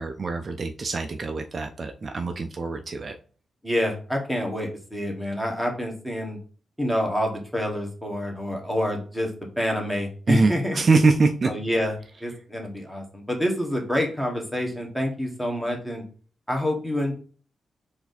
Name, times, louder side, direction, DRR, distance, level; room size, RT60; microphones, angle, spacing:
voice 1, 0.0-3.2 10.3-11.5, right 3 dB, 40° right, 5 dB, 0.4 m, -23 dB
voice 2, 3.6-6.4 6.8-9.3 9.6-10.8 11.4-16.0 16.5-17.1, equal, 5° left, 1 dB, 1.3 m, -27 dB
4.6 x 2.6 x 4.0 m, 0.41 s
cardioid pair, 115°, 0 cm